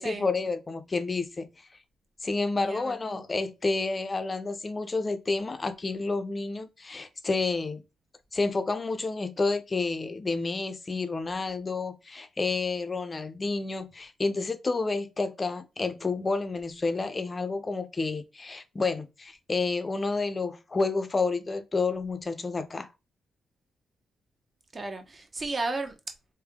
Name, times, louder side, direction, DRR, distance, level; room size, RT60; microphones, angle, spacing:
voice 1, 0.0-1.5 2.2-7.8 8.3-22.9, left 3 dB, 30° left, 0.6 m, -30 dB
voice 2, 2.5-3.3 24.7-26.2, right 3 dB, 35° right, 0.9 m, -34 dB
3.4 x 2.7 x 3.6 m
cardioid pair, 80°, 0 cm